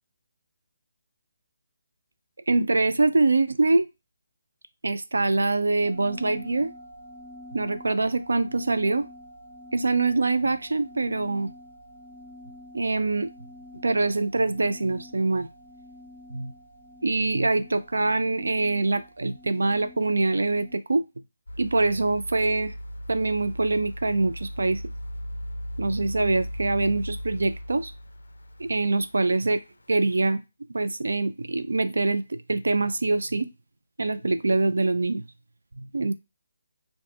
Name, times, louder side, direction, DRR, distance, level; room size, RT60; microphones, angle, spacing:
voice 1, 2.5-3.9 4.8-6.7 7.5-9.0 9.7-11.5 12.7-13.3 13.8-15.5 16.3-16.5 17.0-21.0 21.6-22.7 23.1-24.8 25.8-27.9 28.6-29.6 29.9-30.4 30.7-33.5 34.0-35.2 35.8-36.1, right 3 dB, 80° right, 11 dB, 0.3 m, -24 dB
sound 1, 5.8-20.8, left 1 dB, 45° right, 0.9 m, -47 dB
sound 2, 21.5-29.7 30.1-30.2, equal, 90° left, 0.3 m, -37 dB
2.4 x 2.0 x 3.3 m, 0.25 s
figure-of-eight pair, 150°, 0 cm